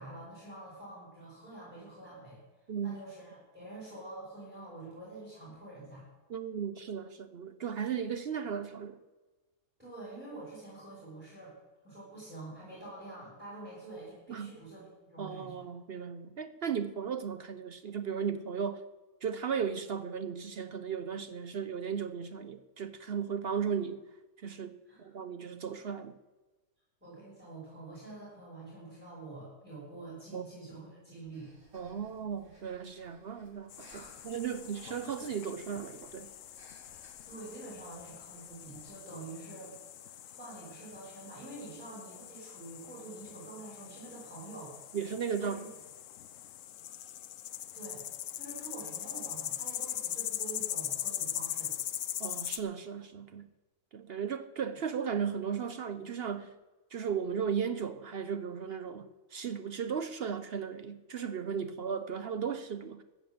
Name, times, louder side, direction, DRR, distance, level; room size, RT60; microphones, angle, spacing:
voice 1, 0.0-2.4 2.8-6.0 9.8-11.5 11.8-15.7 24.9-25.1 27.0-31.5 33.9-34.3 37.3-39.7 40.0-44.7 45.4-45.5 47.7-48.0 48.3-51.7, right 2 dB, 5° right, 5.7 m, -47 dB
voice 2, 6.3-9.0 14.3-14.6 15.2-18.8 19.2-24.0 24.4-24.7 25.0-26.1 30.3-30.4 31.7-36.3 44.9-45.7 52.2-53.5 53.9-56.5 56.9-63.0, right 7 dB, 60° right, 0.6 m, -36 dB
Breathing, 31.3-38.8, equal, 35° right, 3.5 m, -63 dB
sound 1, 33.7-52.6, left 11 dB, 65° left, 0.9 m, -41 dB
14.0 x 6.8 x 7.8 m
omnidirectional pair, 1.6 m